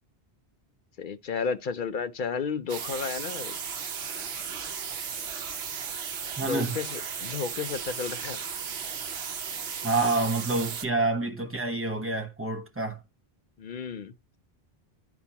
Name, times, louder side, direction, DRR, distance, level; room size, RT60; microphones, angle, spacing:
voice 1, 1.0-3.5 6.4-8.4 13.6-14.1, left 6 dB, 55° left, 0.7 m, -32 dB
sound 1, 2.7-10.9, right 6 dB, 75° right, 1.1 m, -35 dB
voice 2, 6.4-6.8 9.8-13.0, right 3 dB, 15° right, 1.0 m, -28 dB
10.5 x 4.4 x 2.8 m
omnidirectional pair, 1.1 m